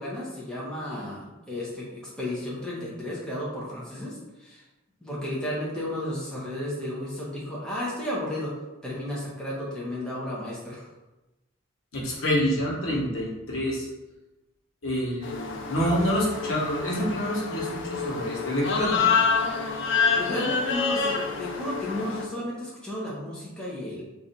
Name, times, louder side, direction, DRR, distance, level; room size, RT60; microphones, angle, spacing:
voice 1, 0.0-4.6 5.0-8.5 8.8-10.9 20.1-24.1, left 1 dB, 5° left, -7 dB, 0.9 m, -33 dB
voice 2, 11.9-13.9 14.8-19.0, equal, 75° left, -4 dB, 1.1 m, -27 dB
sound 1, 15.2-22.2, left 5 dB, 60° left, 0.5 m, -27 dB
3.2 x 2.6 x 4.1 m, 1.0 s
head